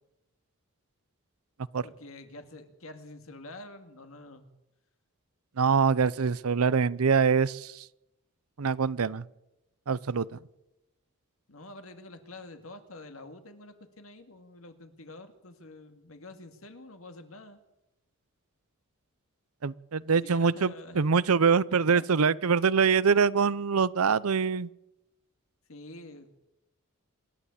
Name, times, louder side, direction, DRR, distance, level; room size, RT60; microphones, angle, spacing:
voice 1, 1.8-4.5 11.5-17.6 20.1-21.0 21.7-22.3 25.7-26.3, left 2 dB, 70° left, 8 dB, 2.3 m, -47 dB
voice 2, 5.6-7.8 8.6-9.2 9.9-10.3 19.6-24.7, right 5 dB, 85° right, 19 dB, 0.7 m, -24 dB
27.0 x 11.5 x 8.5 m, 0.92 s
head